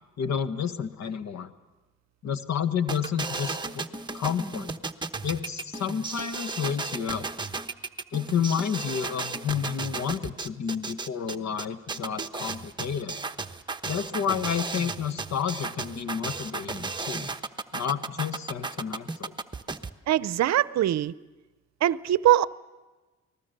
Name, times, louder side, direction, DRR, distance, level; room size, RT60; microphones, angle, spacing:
voice 1, 0.2-1.5 2.2-3.8 4.1-4.7 5.2-7.3 8.1-13.2 13.9-17.3 17.7-19.3, left 7 dB, 60° left, 1.4 m, -30 dB
sound 1, 2.9-19.9, right 3 dB, 15° right, 1.0 m, -34 dB
voice 2, 20.1-21.1 21.8-22.4, right 12 dB, 60° right, 0.7 m, -22 dB
29.5 x 20.0 x 6.7 m
cardioid pair, 90°, 30 cm